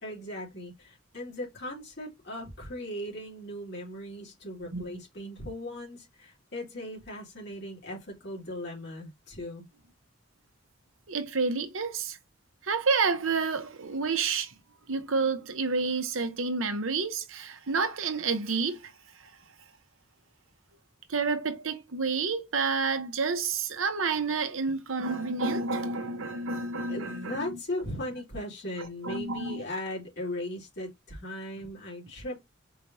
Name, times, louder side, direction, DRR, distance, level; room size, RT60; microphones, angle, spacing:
voice 1, 0.0-9.7 26.8-32.4, left 1 dB, 55° left, 2.6 m, -38 dB
voice 2, 11.1-12.2 12.6-14.5 14.9-18.9 21.1-27.4 28.8-29.6, right 4 dB, 85° right, 0.9 m, -29 dB
4.8 x 3.3 x 2.7 m
head